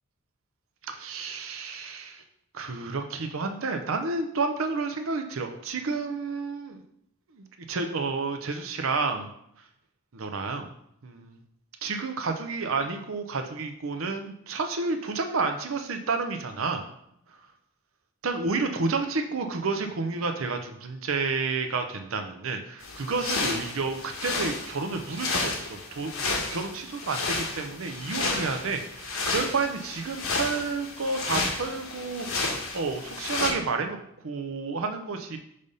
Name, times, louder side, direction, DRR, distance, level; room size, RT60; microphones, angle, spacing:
voice 1, 0.8-2.2 2.5-6.8 7.3-9.3 10.1-10.7 11.0-11.4 11.8-16.8 17.3-17.4 18.2-34.0 34.2-35.4, right 4 dB, 70° right, 6 dB, 0.6 m, -30 dB
sound 1, 22.8-33.5, left 3 dB, 75° left, 1.2 m, -32 dB
5.4 x 3.4 x 5.3 m, 0.74 s
head